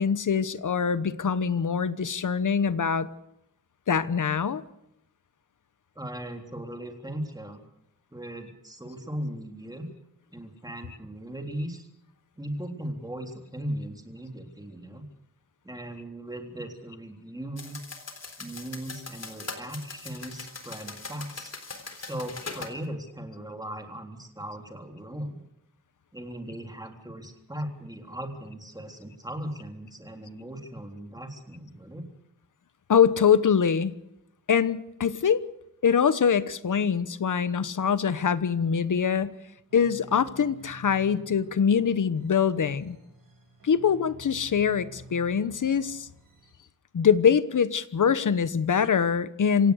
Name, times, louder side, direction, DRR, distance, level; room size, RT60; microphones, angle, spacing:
voice 1, 0.0-3.1 3.9-4.6 32.9-34.0 34.5-35.5 35.8-39.3 39.7-43.0 43.6-46.1 46.9-49.7, left 7 dB, 65° left, 14 dB, 1.2 m, -24 dB
voice 2, 6.0-7.6 8.1-9.9 10.3-11.9 12.4-15.1 15.6-17.9 18.4-21.5 22.0-25.4 26.1-32.0, right 1 dB, 10° right, 4 dB, 3.6 m, -38 dB
sound 1, 17.6-22.7, left 4 dB, 50° left, 3.8 m, -41 dB
sound 2, 39.7-46.5, right 2 dB, 85° right, 7.4 m, -51 dB
26.5 x 17.0 x 6.5 m, 0.80 s
wide cardioid pair, 135°, 33 cm